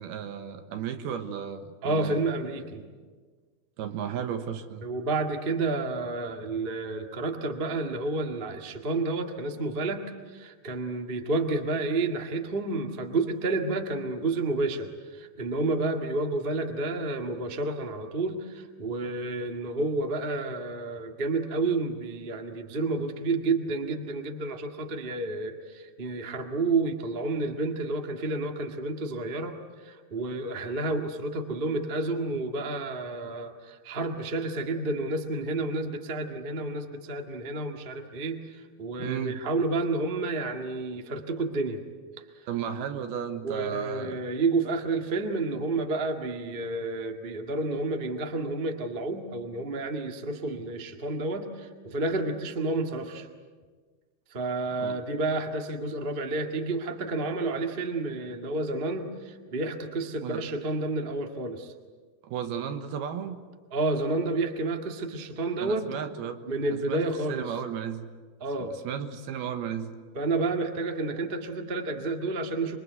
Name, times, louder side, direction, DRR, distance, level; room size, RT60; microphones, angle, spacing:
voice 1, 0.0-2.2 3.8-4.9 39.0-39.4 42.5-44.2 54.8-55.0 60.2-60.5 62.2-63.4 65.6-66.4 66.7-68.1 68.6-69.9, right 8 dB, 75° right, 7 dB, 3.2 m, -34 dB
voice 2, 1.8-2.8 4.8-10.0 10.3-29.6 29.8-38.4 38.8-41.8 43.4-53.3 54.3-61.7 63.7-65.9 66.5-67.5 68.4-68.8 70.1-72.8, right 3 dB, 50° right, 3 dB, 0.6 m, -30 dB
27.0 x 23.5 x 8.1 m, 1.5 s
omnidirectional pair, 4.6 m